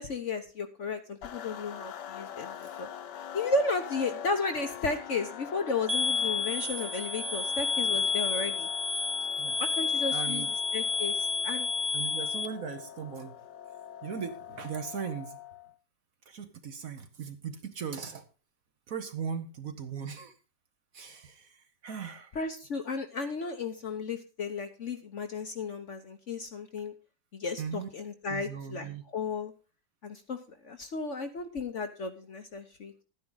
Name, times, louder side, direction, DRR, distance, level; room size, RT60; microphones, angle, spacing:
voice 1, 0.0-2.9 3.3-8.7 9.6-10.4 10.7-11.7 22.3-26.9 27.3-29.5 30.0-33.0, left 3 dB, 50° left, 7 dB, 1.1 m, -34 dB
sound 1, 1.2-15.8, left 9 dB, 70° left, 1.4 m, -44 dB
sound 2, 5.9-12.5, left 4 dB, 30° right, 1.1 m, -30 dB
voice 2, 10.1-10.5 11.9-13.3 14.0-15.4 16.3-18.3 18.9-20.3 20.9-22.3 27.6-27.9 28.3-29.0, right 7 dB, 55° right, 8 dB, 1.2 m, -38 dB
12.5 x 9.7 x 3.9 m, 0.33 s
omnidirectional pair, 2.0 m